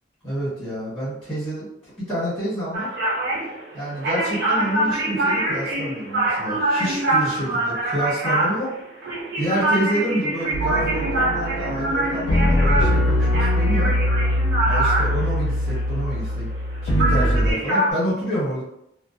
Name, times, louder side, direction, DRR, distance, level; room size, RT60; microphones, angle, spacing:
voice 1, 0.2-2.9 3.7-8.7 9.4-13.9 14.7-16.5 16.8-18.6, right 1 dB, 5° left, -10 dB, 1.2 m, -28 dB
sound 1, 2.7-16.7 17.0-17.9, right 2 dB, 60° right, 0.7 m, -24 dB
sound 2, 10.5-17.5, left 1 dB, 85° left, 0.4 m, -22 dB
2.3 x 2.2 x 2.5 m, 0.79 s
head